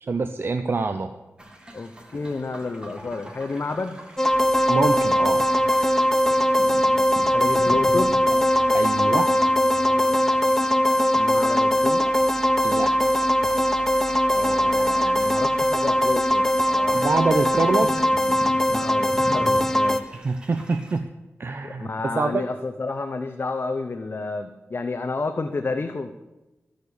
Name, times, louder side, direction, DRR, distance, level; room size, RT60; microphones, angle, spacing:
voice 1, 0.0-1.1 4.7-5.4 8.7-9.4 12.6-13.1 13.4-13.6 16.9-18.1 20.2-21.1 21.4-21.9 22.1-22.4, right 3 dB, 50° right, 8 dB, 0.6 m, -25 dB
sound 1, 1.4-21.0, right 1 dB, 20° right, 1.7 m, -41 dB
voice 2, 1.7-4.0 7.2-8.2 11.1-12.1 14.3-17.1 18.7-20.1 21.6-26.1, left 3 dB, 45° left, 6 dB, 0.7 m, -30 dB
sound 2, 4.2-20.0, equal, 10° left, 0.6 m, -21 dB
sound 3, 4.3-18.6, left 4 dB, 80° left, 1.3 m, -38 dB
13.5 x 6.4 x 6.9 m, 1.1 s
wide cardioid pair, 85°, 5 cm